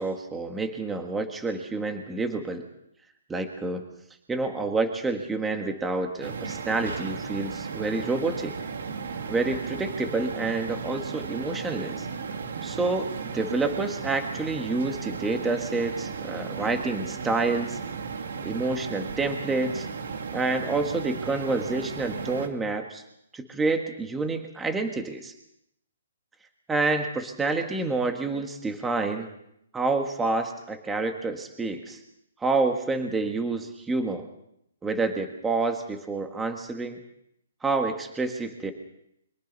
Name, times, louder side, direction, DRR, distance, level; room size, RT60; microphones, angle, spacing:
voice 1, 0.0-2.7 3.3-3.8 4.3-8.5 9.3-12.1 12.6-13.1 13.3-17.8 18.4-19.9 20.3-23.0 23.3-25.3 26.7-29.3 29.7-32.0 32.4-34.3 34.8-37.0 37.6-38.7, right 3 dB, 10° right, 5 dB, 1.6 m, -28 dB
sound 1, 6.2-22.5, right 5 dB, 70° right, 2.4 m, -35 dB
28.5 x 23.5 x 4.1 m, 0.76 s
hypercardioid pair, 160°, 0 cm